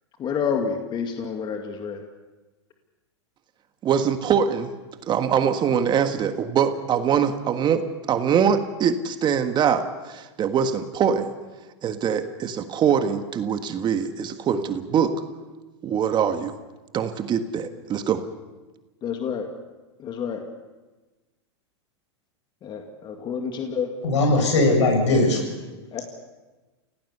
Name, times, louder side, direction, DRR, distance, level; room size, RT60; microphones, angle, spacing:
voice 1, 0.2-2.0 19.0-19.5 20.0-20.4 22.6-23.9 25.9-26.0, left 6 dB, 30° left, 4 dB, 2.2 m, -28 dB
voice 2, 3.8-4.7 5.1-11.3 11.8-15.1 15.8-16.5 16.9-18.2, right 7 dB, 30° right, 8 dB, 1.6 m, -23 dB
voice 3, 24.0-25.4, left 2 dB, 75° left, 3 dB, 7.7 m, -19 dB
29.0 x 17.5 x 6.9 m, 1.2 s
hypercardioid pair, 115°, 15 cm